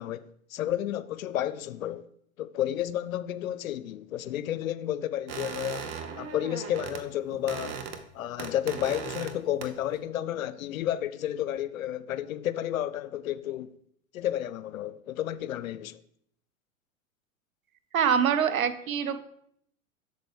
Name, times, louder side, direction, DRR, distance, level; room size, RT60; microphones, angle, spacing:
voice 1, 0.0-2.1 2.4-5.9 6.2-7.8 8.1-13.7 14.1-16.0, left 11 dB, 75° left, 0.5 m, -31 dB
sound 1, 5.3-7.0 7.3-8.1 8.4-9.4 9.6-10.0, right 6 dB, 35° right, 0.8 m, -37 dB
voice 2, 17.9-19.2, right 7 dB, 80° right, 0.7 m, -24 dB
7.9 x 6.7 x 3.3 m
hypercardioid pair, 90°, 41 cm